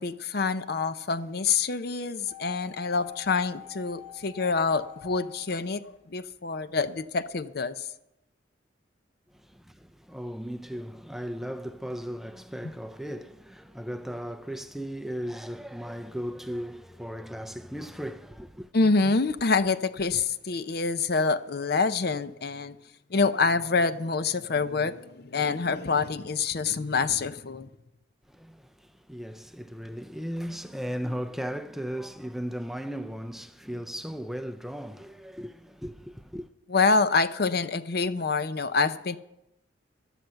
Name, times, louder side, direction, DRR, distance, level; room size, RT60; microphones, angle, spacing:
voice 1, 0.0-7.9 18.7-22.8 23.1-27.7 36.7-39.2, left 4 dB, 55° left, 0.6 m, -26 dB
sound 1, 2.3-6.4 6.6-6.7, left 11 dB, 30° left, 0.9 m, -47 dB
voice 2, 9.3-18.7 28.3-36.5, equal, ahead, 0.5 m, -36 dB
14.0 x 12.0 x 5.7 m
head